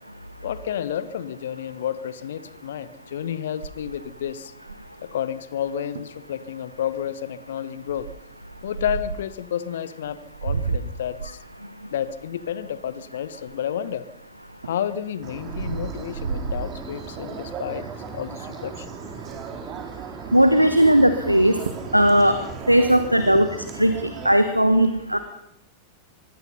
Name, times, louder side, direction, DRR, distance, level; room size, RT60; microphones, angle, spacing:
voice 1, 0.4-4.5 5.0-8.1 8.6-11.4 11.9-14.1 14.6-17.8 18.1-18.9 23.2-23.5, left 9 dB, 60° left, 16 dB, 1.2 m, -30 dB
sound 1, 3.6-5.1 5.6-5.7 6.0-6.2 6.7-7.0 7.9-9.3 10.0-13.9 14.4-17.4 17.9-18.2 18.4-18.5 18.8-19.6 21.2-21.3 21.7-22.0 22.3-23.3, right 5 dB, 70° right, 1.2 m, -33 dB
sound 2, 15.2-24.3, right 6 dB, 30° right, 3.4 m, -37 dB
voice 2, 20.3-21.6 21.9-22.4 22.7-23.5 23.8-23.9 24.2-25.2, right 1 dB, 90° right, 10 dB, 1.2 m, -17 dB
24.5 x 21.0 x 5.7 m, 0.76 s
figure-of-eight pair, 90°, 0 cm